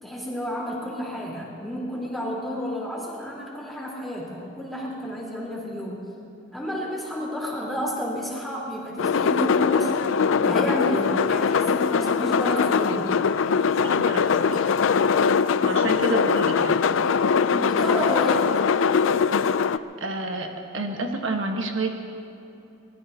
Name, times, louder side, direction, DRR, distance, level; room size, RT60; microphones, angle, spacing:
voice 1, 0.0-6.1 6.5-10.0 10.4-13.1 17.5-18.5, equal, ahead, -6 dB, 3.7 m, -30 dB
sound 1, 9.0-19.8, left 6 dB, 85° left, 0.4 m, -21 dB
voice 2, 13.8-14.7 15.6-16.8 19.7-20.5 20.7-21.9, right 2 dB, 80° right, 2 dB, 1.4 m, -29 dB
24.5 x 20.0 x 2.8 m, 2.9 s
head